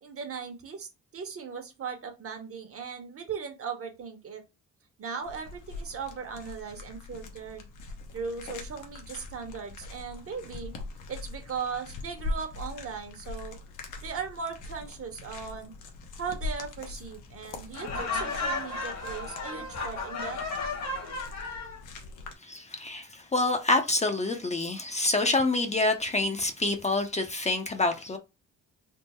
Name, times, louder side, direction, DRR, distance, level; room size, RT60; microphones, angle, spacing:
voice 1, 0.0-4.4 5.0-7.7 8.1-10.7 11.1-13.6 14.0-15.7 16.1-20.4, right 6 dB, 50° right, 1.1 m, -38 dB
sound 1, 5.2-22.3, left 3 dB, 80° left, 0.9 m, -42 dB
Laughter, 17.7-21.8, left 3 dB, 65° left, 1.4 m, -34 dB
voice 2, 22.4-28.2, left 2 dB, 25° left, 0.6 m, -27 dB
3.6 x 2.0 x 4.2 m
cardioid pair, 90°, 30 cm